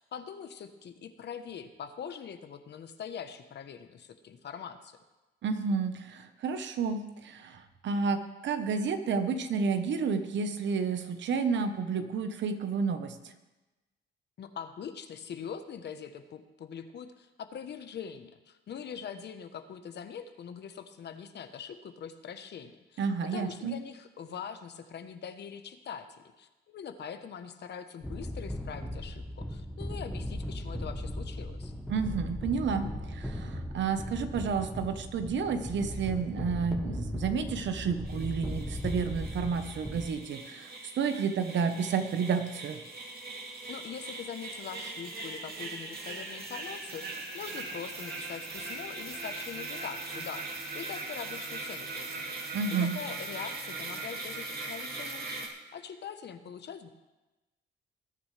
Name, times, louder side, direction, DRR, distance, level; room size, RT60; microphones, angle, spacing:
voice 1, 0.0-5.0 14.4-23.0 23.3-26.1 26.4-31.7 43.7-56.9, left 7 dB, 60° left, 9 dB, 1.1 m, -43 dB
voice 2, 5.4-13.2 23.0-23.7 31.9-42.8 52.5-52.9, right 5 dB, 65° right, 8 dB, 1.2 m, -31 dB
sound 1, 28.0-40.1, left 1 dB, ahead, 1.2 m, -37 dB
sound 2, 38.0-55.5, right 3 dB, 50° right, 2.5 m, -40 dB
20.0 x 9.6 x 3.4 m, 1.1 s
cardioid pair, 90°, 20 cm